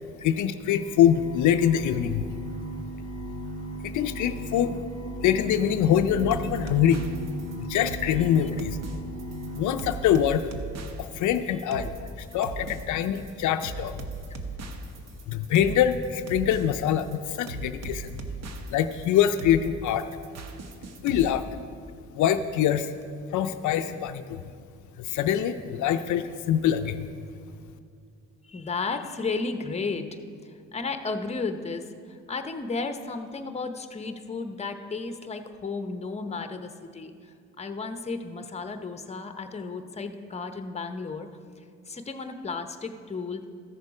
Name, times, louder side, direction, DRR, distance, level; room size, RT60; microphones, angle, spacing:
voice 1, 0.2-2.3 3.8-4.8 5.2-7.0 7.6-8.8 9.5-10.5 11.0-11.9 12.2-14.0 15.3-18.2 18.7-20.1 21.0-21.5 22.1-22.9 23.3-24.4 25.0-27.1, left 10 dB, 75° left, 9 dB, 0.5 m, -24 dB
sound 1, 0.7-10.4, right 1 dB, 35° right, 3.1 m, -37 dB
sound 2, 6.0-21.3, right 3 dB, 60° right, 1.0 m, -38 dB
voice 2, 28.4-37.1 37.6-41.3 41.9-43.4, left 4 dB, 20° left, 8 dB, 0.8 m, -33 dB
14.0 x 6.6 x 4.8 m, 2.2 s
cardioid pair, 90°, 30 cm